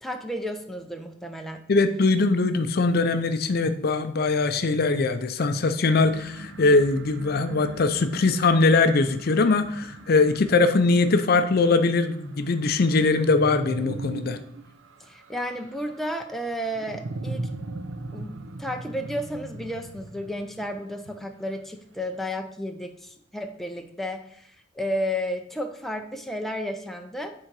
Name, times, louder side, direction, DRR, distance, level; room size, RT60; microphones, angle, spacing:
voice 1, 0.0-1.6 15.0-17.5 18.1-27.3, equal, ahead, 4 dB, 0.5 m, -32 dB
voice 2, 1.7-14.4, left 3 dB, 50° left, 9 dB, 0.5 m, -21 dB
sound 1, 6.0-21.5, right 2 dB, 75° right, 0.6 m, -39 dB
9.1 x 3.8 x 4.7 m, 0.70 s
head